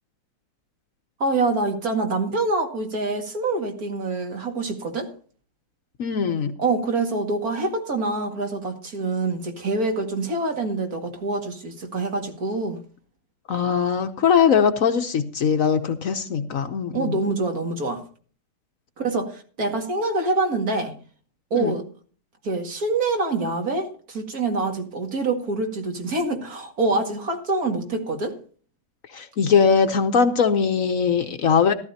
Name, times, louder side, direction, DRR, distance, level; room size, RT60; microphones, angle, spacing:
voice 1, 1.2-5.1 6.6-12.8 16.9-18.0 19.0-21.0 21.5-21.9 22.4-28.4, right 3 dB, 60° right, 2.5 m, -25 dB
voice 2, 6.0-6.5 13.5-17.2 21.5-21.7 29.1-31.7, left 6 dB, 60° left, 1.1 m, -21 dB
14.5 x 14.0 x 2.8 m
omnidirectional pair, 1.8 m